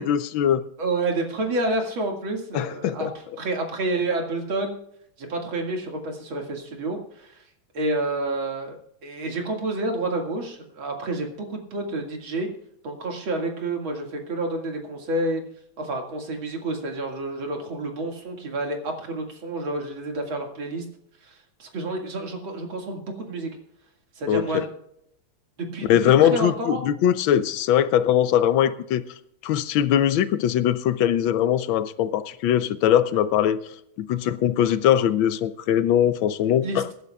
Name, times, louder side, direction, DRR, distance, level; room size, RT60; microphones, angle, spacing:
voice 1, 0.0-0.6 2.5-3.1 24.3-24.6 25.9-29.0 29.4-33.6 34.0-36.9, left 10 dB, 80° left, 1.4 m, -21 dB
voice 2, 0.8-3.1 3.4-4.8 5.2-7.4 7.7-8.8 9.0-12.5 12.8-15.4 15.8-20.8 21.2-23.5 24.2-24.7 25.6-26.8 36.6-36.9, right 2 dB, 80° right, 2.8 m, -29 dB
23.5 x 11.0 x 2.3 m
omnidirectional pair, 2.2 m